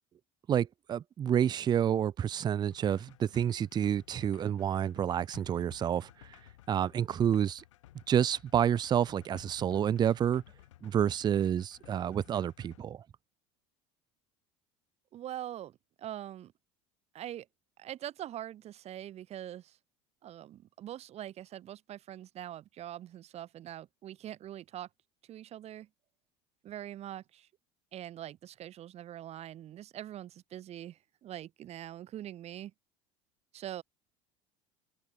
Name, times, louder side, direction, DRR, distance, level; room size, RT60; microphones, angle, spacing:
voice 1, 0.5-6.1 6.7-7.6 8.1-10.4 10.8-13.0, right 9 dB, 30° right, 0.4 m, -29 dB
sound 1, 2.7-12.8, left 14 dB, 85° left, 2.3 m, -57 dB
voice 2, 15.1-16.5 17.1-17.5 17.8-19.8 20.2-24.9 25.3-25.9 26.6-27.5 27.9-32.7 33.5-33.8, right 12 dB, 45° right, 0.9 m, -43 dB
open air
hypercardioid pair, 85°, 15 cm